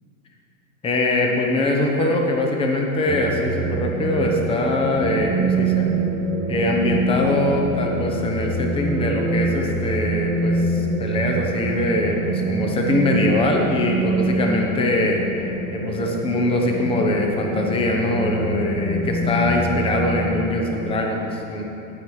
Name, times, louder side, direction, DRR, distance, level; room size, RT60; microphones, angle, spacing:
voice 1, 0.8-5.9 6.5-15.2 15.7-21.6, left 2 dB, 15° left, 1 dB, 0.9 m, -22 dB
sound 1, 3.1-20.6, right 2 dB, 35° right, 1.4 m, -25 dB
16.0 x 5.4 x 4.9 m, 2.8 s
supercardioid pair, 135°, 43 cm